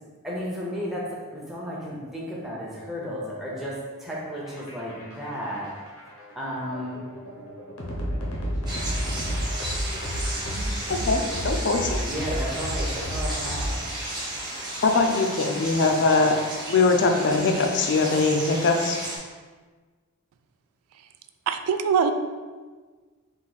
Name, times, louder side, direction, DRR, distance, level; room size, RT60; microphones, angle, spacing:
voice 1, 0.2-5.7 6.4-7.0 12.0-13.9, equal, ahead, -6 dB, 0.7 m, -33 dB
sound 1, 4.4-14.1, equal, 80° left, 0.9 m, -31 dB
sound 2, 8.7-19.2, right 1 dB, 20° right, 1.0 m, -34 dB
voice 2, 10.9-12.0 14.8-16.3 16.7-19.0, left 3 dB, 55° left, 3 dB, 0.5 m, -22 dB
voice 3, 21.5-22.1, right 6 dB, 75° right, 9 dB, 0.3 m, -22 dB
4.0 x 2.7 x 4.0 m, 1.4 s
head